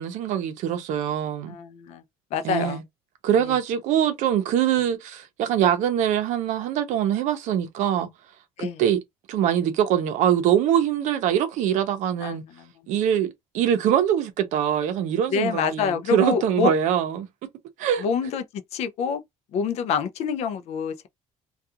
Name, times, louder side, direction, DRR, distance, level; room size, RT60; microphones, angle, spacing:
voice 1, 0.0-1.6 2.4-2.8 3.2-8.1 8.6-9.0 9.3-12.4 12.9-17.3 17.8-18.1, right 10 dB, 60° right, 0.6 m, -23 dB
voice 2, 1.5-2.0 2.3-2.8 3.4-3.6 8.6-8.8 12.2-12.7 15.3-16.7 18.0-18.4 18.7-19.2 19.5-21.1, left 6 dB, 55° left, 0.4 m, -26 dB
2.4 x 2.3 x 2.7 m
cardioid pair, 155°, 14 cm